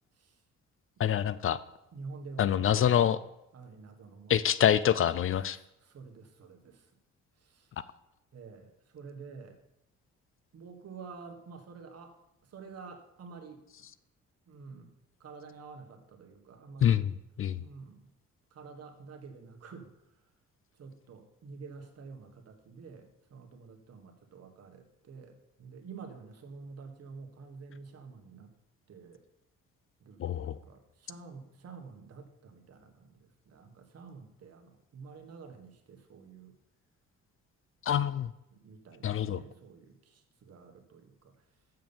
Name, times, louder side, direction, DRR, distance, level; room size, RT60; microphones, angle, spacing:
voice 1, 1.0-1.6 2.4-3.2 4.3-5.6 16.8-17.1 17.4-17.6 30.2-30.6 37.9-38.3 39.0-39.4, left 9 dB, 45° left, 16 dB, 0.4 m, -26 dB
voice 2, 1.9-3.0 3.5-4.6 5.8-6.9 7.4-7.7 8.3-9.6 10.5-12.2 12.4-13.9 14.5-14.9 15.2-17.0 17.6-18.1 18.5-19.9 20.8-28.5 28.9-29.2 30.0-36.6 38.5-41.3, right 4 dB, 55° right, 4 dB, 1.5 m, -49 dB
6.9 x 6.2 x 7.1 m, 0.87 s
cardioid pair, 90°, 30 cm